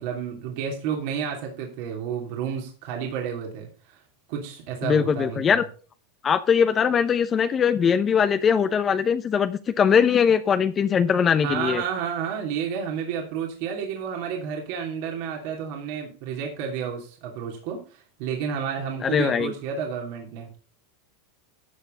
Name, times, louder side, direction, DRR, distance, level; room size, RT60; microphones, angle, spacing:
voice 1, 0.0-4.0 4.3-5.6 11.4-20.5, right 7 dB, 65° right, 1 dB, 2.8 m, -31 dB
voice 2, 4.8-5.6 6.2-11.8 19.0-19.5, left 7 dB, 30° left, 10 dB, 0.8 m, -21 dB
12.5 x 7.2 x 3.9 m, 0.39 s
hypercardioid pair, 110°, 0 cm